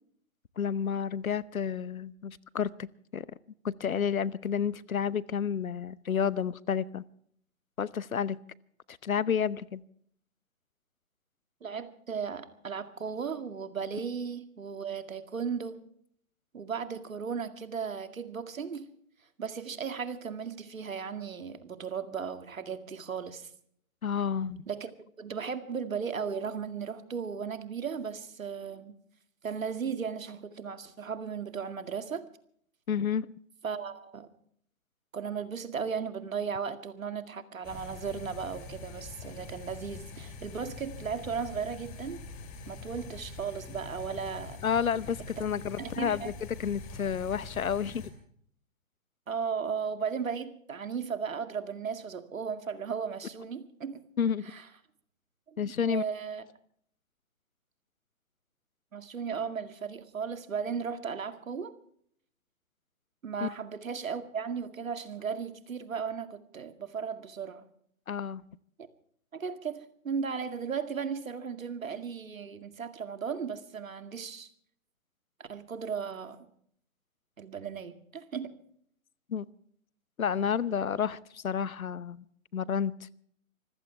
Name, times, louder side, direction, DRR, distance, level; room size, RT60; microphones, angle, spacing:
voice 1, 0.6-2.9 3.1-3.3 3.6-7.0 7.8-8.4 8.9-9.8 24.0-24.6 32.9-33.3 44.6-46.3 46.6-48.0 54.2-54.5 55.6-56.0 63.4-63.5 68.1-68.4 79.3-79.5 80.2-82.2 82.5-83.1, left 7 dB, 80° left, 0.9 m, -30 dB
voice 2, 11.6-15.8 16.5-18.9 19.4-23.5 24.7-24.9 25.2-28.9 29.4-32.3 33.6-34.3 35.1-42.2 42.7-44.6 45.8-46.3 49.3-54.0 54.5-54.6 55.5-56.4 58.9-61.7 63.2-67.6 68.8-68.9 69.3-74.5 75.4-76.5 77.4-78.5, right 6 dB, 70° right, 2.2 m, -36 dB
sound 1, 37.6-48.1, left 4 dB, 20° left, 2.5 m, -44 dB
25.5 x 15.5 x 3.4 m
figure-of-eight pair, 145°, 41 cm